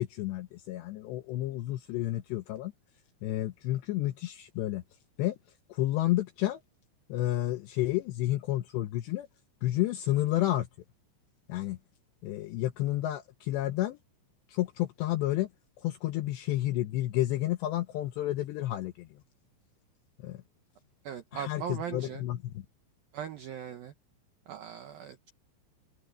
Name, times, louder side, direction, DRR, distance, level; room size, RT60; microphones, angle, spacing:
voice 1, 0.0-2.7 3.2-4.8 5.2-5.4 5.7-6.6 7.1-9.3 9.6-10.7 11.5-11.8 12.2-14.0 14.5-15.5 15.8-19.1 20.2-20.4 21.3-22.6, left 15 dB, 80° left, 2.6 m, -30 dB
voice 2, 21.0-22.2 23.1-23.9 24.5-25.3, right 9 dB, 80° right, 2.1 m, -39 dB
omnidirectional pair, 5.9 m